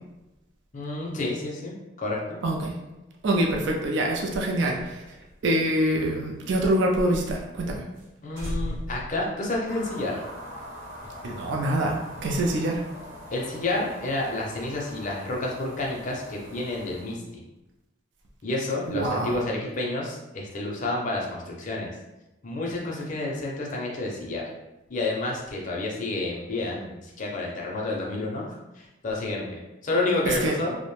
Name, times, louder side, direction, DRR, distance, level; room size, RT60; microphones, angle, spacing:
voice 1, 0.7-1.7 2.0-2.4 8.2-10.2 13.3-17.4 18.4-22.0 22.4-24.4 24.9-30.8, left 2 dB, 40° left, -2 dB, 0.5 m, -30 dB
voice 2, 2.4-2.8 3.2-5.0 5.4-7.8 11.2-12.8 18.9-19.4 30.3-30.6, right 1 dB, 60° right, 0 dB, 0.4 m, -25 dB
sound 1, 4.1-6.9 7.2-7.3 7.6-7.7 8.0-8.1 8.4-10.1, equal, 85° right, 0.9 m, -37 dB
sound 2, 9.6-17.2, equal, 35° right, 0.8 m, -43 dB
2.4 x 2.1 x 3.0 m, 0.99 s
head